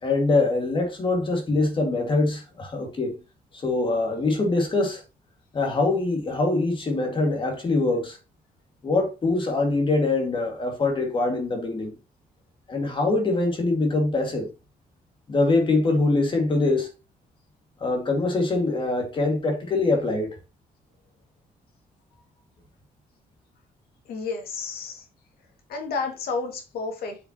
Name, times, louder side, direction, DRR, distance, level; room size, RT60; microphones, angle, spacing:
voice 1, 0.0-3.1 3.6-5.0 5.5-8.2 8.8-11.9 12.7-14.5 15.3-16.9 17.8-20.3, left 2 dB, 35° left, 2.1 m, -23 dB
voice 2, 24.1-25.1 25.7-27.2, left 4 dB, 85° left, 2.2 m, -31 dB
7.8 x 5.9 x 3.0 m
cardioid pair, 150°, 15 cm